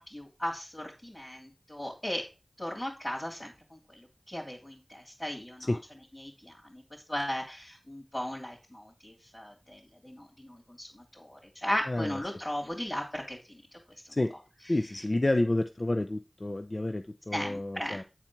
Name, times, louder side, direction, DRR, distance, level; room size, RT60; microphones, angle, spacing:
voice 1, 0.0-2.3 2.6-5.8 6.2-6.8 7.1-13.6 17.3-18.0, left 1 dB, 25° left, -2 dB, 2.7 m, -37 dB
voice 2, 11.9-12.2 14.1-14.3 14.7-18.0, left 1 dB, 50° left, 9 dB, 0.5 m, -29 dB
9.0 x 4.3 x 5.9 m, 0.29 s
wide cardioid pair, 40°, 0 cm